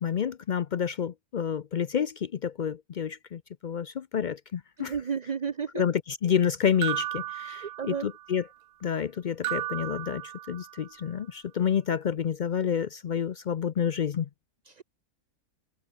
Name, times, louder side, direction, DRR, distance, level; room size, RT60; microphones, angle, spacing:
voice 1, 0.0-4.9 5.7-8.4 8.8-14.3, left 8 dB, 65° left, 0.4 m, -29 dB
voice 2, 4.8-5.8 7.5-8.1 14.7-14.8, right 6 dB, 40° right, 0.7 m, -33 dB
sound 1, 6.8-8.3 9.4-10.9, right 15 dB, 85° right, 1.0 m, -34 dB
omnidirectional pair, 1.5 m